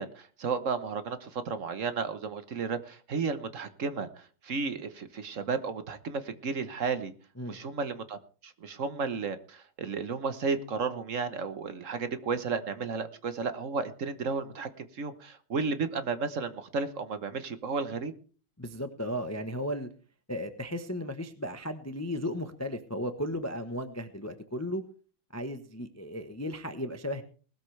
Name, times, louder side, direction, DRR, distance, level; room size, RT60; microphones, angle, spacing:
voice 1, 0.0-7.1 7.5-18.1, right 4 dB, 45° right, 11 dB, 1.2 m, -33 dB
voice 2, 18.6-19.9 20.3-24.8 25.3-27.2, equal, 20° left, 9 dB, 0.4 m, -35 dB
19.5 x 13.0 x 3.3 m, 0.39 s
omnidirectional pair, 2.3 m